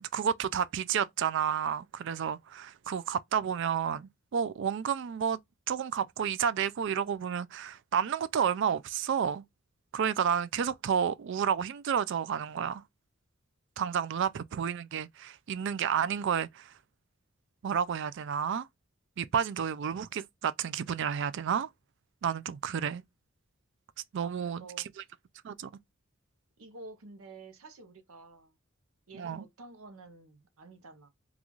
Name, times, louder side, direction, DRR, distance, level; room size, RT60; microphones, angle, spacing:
voice 1, 0.0-5.4 5.7-9.4 9.9-12.8 13.8-16.7 17.6-18.7 19.2-21.7 22.2-23.0 24.1-24.6 25.4-25.7 29.1-29.4, right 7 dB, 60° right, 0.4 m, -31 dB
voice 2, 14.0-14.4 24.2-24.9 26.6-28.6 29.1-31.1, right 3 dB, 90° right, 0.8 m, -50 dB
3.9 x 2.4 x 3.0 m
head